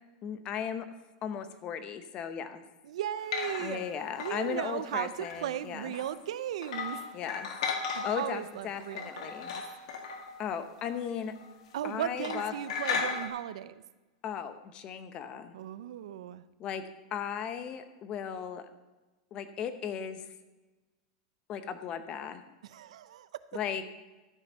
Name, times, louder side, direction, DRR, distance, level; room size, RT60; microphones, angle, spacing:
voice 1, 0.2-0.9 1.2-2.6 3.6-5.9 7.1-7.5 8.0-9.5 10.4-11.3 11.8-12.5 14.2-15.5 16.6-18.7 19.3-20.2 21.5-22.4 23.5-23.8, left 8 dB, 30° left, 10 dB, 1.0 m, -36 dB
voice 2, 2.8-3.8 4.2-7.0 7.9-9.6 11.7-13.8 15.5-16.4 22.6-23.3, right 11 dB, 80° right, 15 dB, 0.7 m, -36 dB
sound 1, 3.2-3.9 4.2-5.6 5.9-6.1 6.6-8.4 8.7-11.1 11.4-11.5 11.8-12.0 12.2-13.3, left 5 dB, 70° left, 2.0 m, -36 dB
13.0 x 8.9 x 5.6 m, 1.1 s
supercardioid pair, 160°, 3 cm